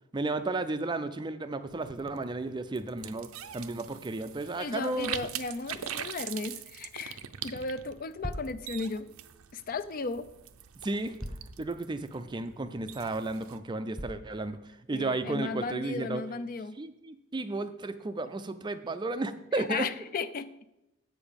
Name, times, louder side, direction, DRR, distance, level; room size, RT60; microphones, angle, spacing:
voice 1, 0.1-3.3 3.5-5.2 10.8-11.1 11.6-16.2 16.8-19.9, right 2 dB, 20° right, 11 dB, 0.4 m, -33 dB
sound 1, 1.7-13.6, right 10 dB, 75° right, 0.5 m, -43 dB
voice 2, 4.6-9.1 9.5-10.3 14.9-16.8 19.5-20.5, left 4 dB, 40° left, 13 dB, 0.4 m, -35 dB
sound 2, 8.2-8.6 10.1-10.2 11.2-11.6 12.1-12.2 12.8-12.9 14.0-14.3, equal, ahead, 0.9 m, -39 dB
8.1 x 6.9 x 5.2 m, 0.90 s
head